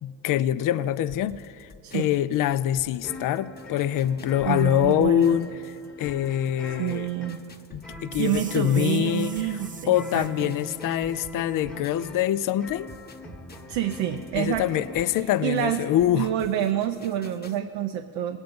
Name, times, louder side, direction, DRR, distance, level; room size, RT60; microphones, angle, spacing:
voice 1, 0.0-5.5 6.0-7.1 7.7-9.3 9.9-12.9 14.4-16.3, left 11 dB, 50° left, 14 dB, 0.5 m, -24 dB
sound 1, 1.1-12.3 12.7-17.6, left 3 dB, 25° left, 1.1 m, -50 dB
sound 2, 3.0-15.7, left 1 dB, ahead, 1.1 m, -42 dB
voice 2, 4.5-5.4 6.8-7.4 8.2-10.5 13.7-14.7 15.4-15.8 16.1-18.4, right 11 dB, 80° right, 7 dB, 0.7 m, -28 dB
sound 3, 8.1-11.1, right 6 dB, 20° right, 0.4 m, -44 dB
18.5 x 8.1 x 5.2 m, 2.3 s
cardioid pair, 85°, 42 cm